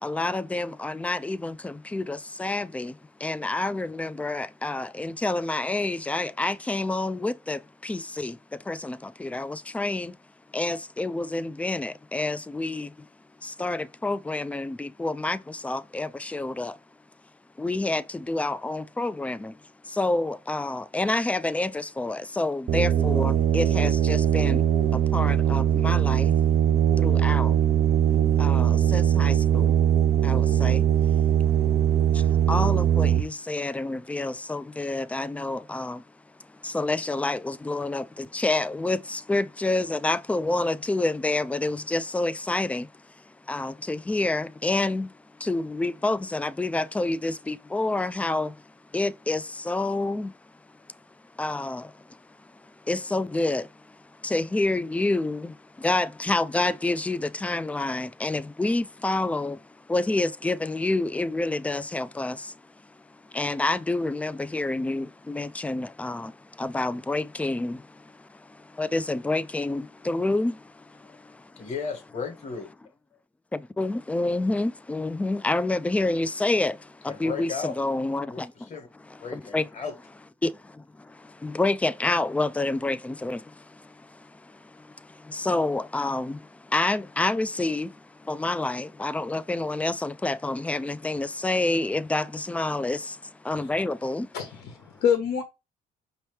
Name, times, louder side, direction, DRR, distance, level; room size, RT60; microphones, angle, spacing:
voice 1, 0.0-10.2 10.5-13.1 13.4-16.8 17.6-26.4 27.0-27.7 28.4-29.8 30.2-30.9 31.4-31.7 32.1-36.1 36.5-42.9 43.2-50.4 51.3-71.7 73.5-78.7 79.1-79.7 80.4-94.3, left 2 dB, 10° left, 0.3 m, -29 dB
sound 1, 22.7-33.2, right 10 dB, 45° right, 0.6 m, -21 dB
voice 2, 71.6-72.7 77.1-77.8 78.2-78.9 79.2-79.9, left 5 dB, 40° left, 1.3 m, -35 dB
voice 3, 94.3-95.4, left 8 dB, 85° left, 1.1 m, -26 dB
5.3 x 2.9 x 3.2 m
cardioid pair, 110°, 17 cm